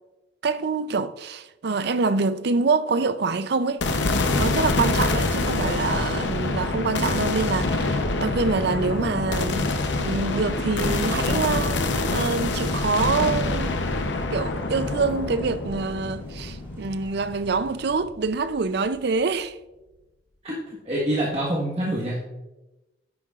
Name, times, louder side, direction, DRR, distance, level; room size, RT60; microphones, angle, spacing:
voice 1, 0.4-3.8 4.4-9.7 10.0-13.8 14.3-19.6, right 4 dB, 60° right, 0.5 m, -26 dB
sound 1, 3.8-18.1, left 2 dB, 70° left, 0.8 m, -26 dB
sound 2, 12.2-18.0, right 3 dB, 15° right, 2.6 m, -49 dB
voice 2, 20.4-22.2, right 1 dB, 35° right, 1.4 m, -26 dB
9.7 x 9.7 x 2.4 m
head